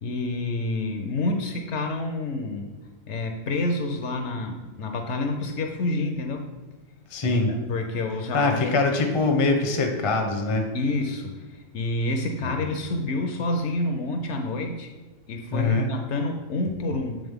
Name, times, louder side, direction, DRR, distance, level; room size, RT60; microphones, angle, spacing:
voice 1, 0.0-2.7 3.1-6.5 7.2-7.4 7.7-8.7 10.7-14.9 15.3-17.2, left 2 dB, 65° left, 5 dB, 0.8 m, -28 dB
voice 2, 7.1-7.5 8.3-10.7 12.4-12.6 15.5-15.9, left 3 dB, 35° left, 3 dB, 0.5 m, -23 dB
7.8 x 3.8 x 3.5 m, 1.2 s
omnidirectional pair, 1.4 m